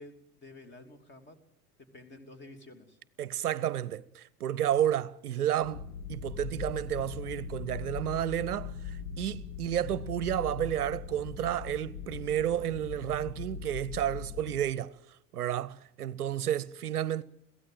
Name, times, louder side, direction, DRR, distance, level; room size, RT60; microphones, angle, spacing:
voice 1, 0.0-1.4 1.9-3.0, left 2 dB, 20° left, 3.1 m, -50 dB
voice 2, 3.2-17.2, right 11 dB, 70° right, 0.8 m, -31 dB
sound 1, 5.6-14.7, left 7 dB, 45° left, 1.5 m, -41 dB
22.5 x 16.5 x 9.1 m
figure-of-eight pair, 80°, 48 cm